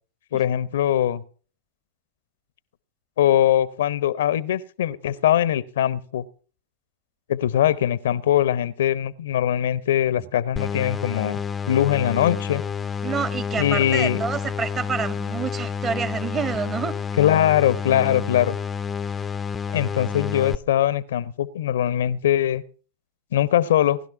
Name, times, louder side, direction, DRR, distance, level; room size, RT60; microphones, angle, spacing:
voice 1, 0.3-1.2 3.2-6.2 7.3-11.4 11.7-12.6 13.6-14.2 17.2-18.6 19.7-22.6 23.3-24.0, left 11 dB, 60° left, 21 dB, 0.8 m, -21 dB
sound 1, 10.6-20.6, left 6 dB, 15° left, 0.7 m, -29 dB
voice 2, 13.0-16.9, right 6 dB, 25° right, 14 dB, 1.5 m, -28 dB
19.0 x 12.0 x 5.7 m, 0.42 s
figure-of-eight pair, 90°, 0 cm